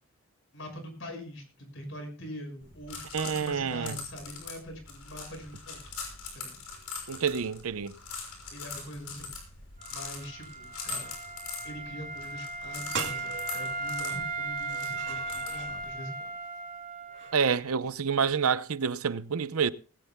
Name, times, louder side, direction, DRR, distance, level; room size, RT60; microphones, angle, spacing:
voice 1, 0.5-5.8 6.3-6.6 8.5-9.3 9.9-11.1 11.6-16.1, equal, 60° left, 6.1 m, -43 dB
sound 1, 2.6-15.9, left 4 dB, 85° left, 6.2 m, -42 dB
voice 2, 3.1-4.0 7.1-7.9 17.3-19.7, right 6 dB, 85° right, 0.7 m, -28 dB
Wind instrument woodwind instrument, 9.8-17.6, right 3 dB, 35° right, 4.9 m, -37 dB
sound 2, 12.6-12.7 12.9-15.8 17.1-17.4, right 6 dB, 55° right, 2.4 m, -40 dB
19.5 x 16.5 x 2.3 m
head